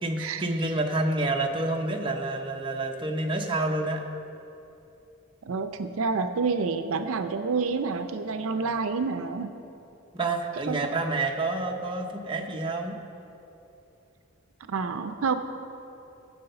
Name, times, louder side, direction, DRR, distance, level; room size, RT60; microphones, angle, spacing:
voice 1, 0.0-4.0 8.6-8.7 10.1-13.0, right 2 dB, 25° right, 2 dB, 0.7 m, -28 dB
voice 2, 5.4-9.5 10.7-10.8 14.7-15.4, right 4 dB, 70° right, 8 dB, 0.5 m, -28 dB
9.6 x 7.7 x 6.7 m, 2.9 s
head